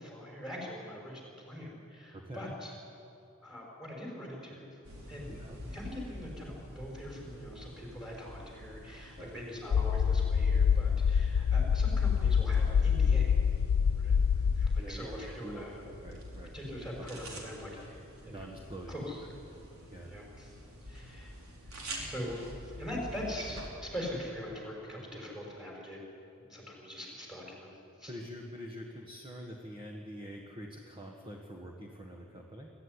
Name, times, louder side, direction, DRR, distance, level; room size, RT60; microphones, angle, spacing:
voice 1, 0.0-2.7 3.4-4.7 5.1-5.4 5.7-13.3 13.9-14.1 14.6-15.8 16.5-17.9 18.2-18.4 18.9-19.2 20.1-20.5 20.9-21.3 22.0-22.4 22.6-26.0 26.4-27.7 28.0-28.1, equal, 5° right, -2 dB, 5.9 m, -42 dB
voice 2, 2.1-2.6 5.3-5.6 9.2-9.5 14.8-16.5 17.1-17.2 17.7-17.8 18.3-19.0 19.9-20.1 28.1-32.7, equal, 25° right, 0 dB, 1.6 m, -45 dB
sound 1, 4.8-23.7, equal, 75° right, 4.4 m, -48 dB
sound 2, 9.7-14.8, left 6 dB, 90° left, 0.4 m, -26 dB
23.0 x 14.0 x 9.9 m, 2.7 s
head